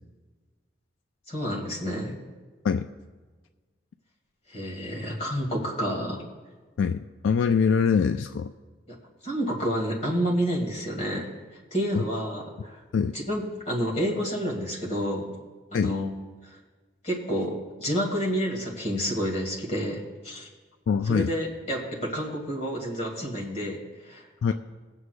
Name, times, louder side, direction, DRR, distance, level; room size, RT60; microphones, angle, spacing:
voice 1, 1.3-2.2 4.5-6.2 8.9-9.0 9.2-11.3 11.7-12.8 13.1-15.3 15.7-16.1 16.4-16.6 17.0-20.5 21.1-24.3, equal, 35° left, -2 dB, 2.0 m, -29 dB
voice 2, 6.8-8.5 12.9-13.1 15.7-15.9 20.9-21.3 24.4-24.5, left 6 dB, 80° left, 8 dB, 0.3 m, -23 dB
22.5 x 7.9 x 2.2 m, 1.3 s
head